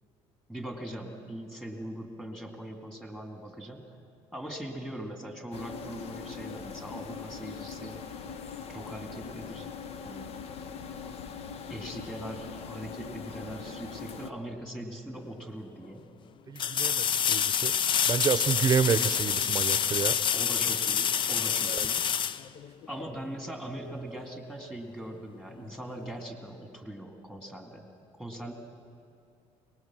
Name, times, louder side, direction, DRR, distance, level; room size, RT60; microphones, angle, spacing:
voice 1, 0.5-4.0 4.3-8.0 8.7-9.7 10.0-10.3 11.7-16.1 20.3-22.1 22.9-27.9 28.2-28.5, right 1 dB, 5° left, 3 dB, 2.4 m, -41 dB
sound 1, 5.5-14.3, left 6 dB, 60° left, 0.9 m, -41 dB
sound 2, 15.2-15.3 16.6-23.2 26.0-26.1, left 8 dB, 45° left, 0.5 m, -27 dB
voice 2, 16.5-17.7 18.1-20.1, right 7 dB, 35° right, 13 dB, 0.8 m, -28 dB
23.0 x 19.5 x 6.2 m, 2.5 s
cardioid pair, 120°, 12 cm